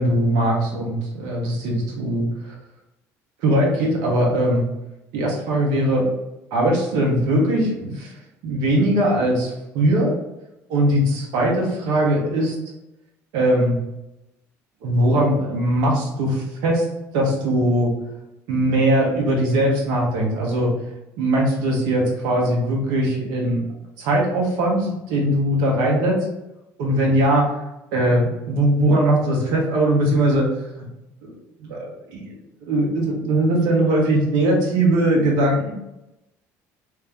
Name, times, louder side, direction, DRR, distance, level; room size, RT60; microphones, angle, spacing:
voice 1, 0.0-2.5 3.4-4.6 5.1-6.1 6.5-8.1 8.4-10.1 10.7-12.6 13.3-13.8 14.8-16.8 17.1-17.9 18.5-20.7 21.2-23.6 24.0-26.2 26.8-27.4 27.9-30.4 31.6-32.4 32.7-35.7, right 1 dB, 80° right, -2 dB, 1.2 m, -20 dB
3.2 x 2.9 x 3.5 m, 0.92 s
cardioid pair, 125°, 7 cm